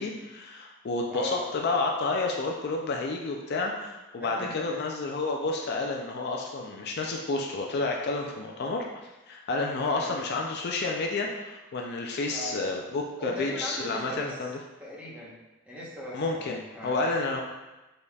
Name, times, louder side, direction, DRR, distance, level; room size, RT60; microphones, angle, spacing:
voice 1, 0.0-8.9 9.3-14.6 16.1-17.4, left 3 dB, 50° left, 1 dB, 0.4 m, -30 dB
voice 2, 1.1-1.4 4.2-4.8 9.6-10.1 12.3-12.6 13.2-14.4 14.8-15.3 15.7-17.1, equal, 5° right, -6 dB, 0.9 m, -39 dB
5.1 x 4.1 x 2.3 m, 1.1 s
head